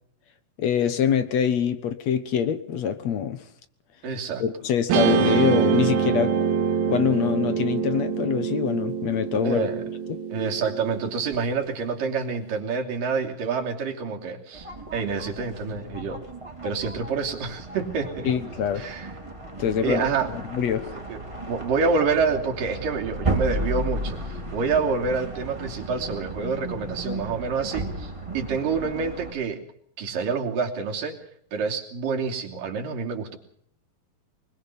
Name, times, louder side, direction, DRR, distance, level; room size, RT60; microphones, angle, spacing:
voice 1, 0.6-3.4 4.4-6.3 6.9-9.7 10.1-10.2 18.2-18.9 19.6-20.0 20.5-20.9, left 8 dB, 60° left, 12 dB, 2.0 m, -24 dB
voice 2, 4.0-4.4 9.4-9.8 10.3-16.2 16.6-18.3 18.8-19.1 19.8-20.3 20.9-21.2 21.5-29.6 30.0-31.2 31.5-33.4, right 5 dB, 65° right, 2 dB, 4.5 m, -27 dB
Guitar, 4.9-11.4, right 7 dB, 80° right, 3.2 m, -25 dB
sound 1, 14.5-29.3, right 2 dB, 10° right, 2.8 m, -34 dB
24.5 x 22.0 x 5.6 m, 0.66 s
omnidirectional pair, 4.3 m